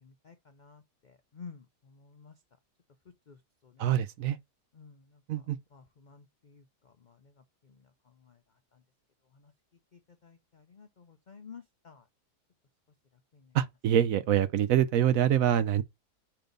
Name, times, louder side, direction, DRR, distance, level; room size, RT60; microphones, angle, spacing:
voice 1, 0.0-2.3 3.3-3.9 4.7-5.4 5.7-8.4 8.7-8.8 9.3-9.5 9.9-12.1 13.3-13.5, left 5 dB, 75° left, 0.4 m, -53 dB
voice 2, 3.8-4.4 5.3-5.6 13.5-15.8, right 10 dB, 70° right, 0.9 m, -25 dB
5.2 x 4.4 x 5.2 m
omnidirectional pair, 1.7 m